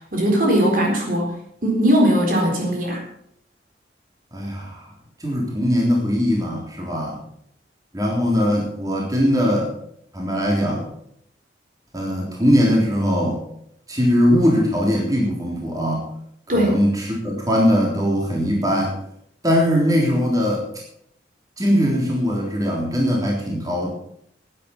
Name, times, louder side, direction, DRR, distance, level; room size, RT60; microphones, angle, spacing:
voice 1, 0.1-1.3 1.6-3.0 16.5-16.8, equal, 50° right, 0 dB, 4.1 m, -19 dB
voice 2, 4.3-4.9 5.2-7.2 7.9-9.7 10.1-10.8 11.9-13.4 13.9-16.0 16.5-19.0 19.4-20.6 21.6-23.9, equal, 20° right, -2 dB, 3.5 m, -20 dB
15.0 x 9.9 x 5.9 m, 0.71 s
head